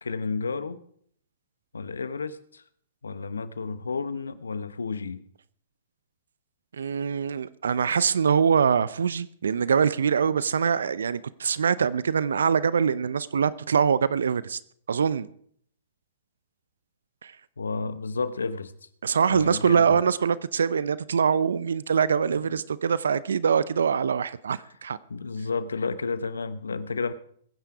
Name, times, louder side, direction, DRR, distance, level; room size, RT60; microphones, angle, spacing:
voice 1, 0.0-0.8 1.7-2.6 3.0-5.2 17.6-18.7 19.3-20.0 22.3-22.6 25.1-27.1, left 4 dB, 80° left, 1.0 m, -31 dB
voice 2, 6.8-14.6 14.9-15.3 17.2-17.3 19.0-25.0, right 6 dB, 75° right, 0.6 m, -24 dB
21.5 x 9.3 x 4.8 m
figure-of-eight pair, 115°, 0 cm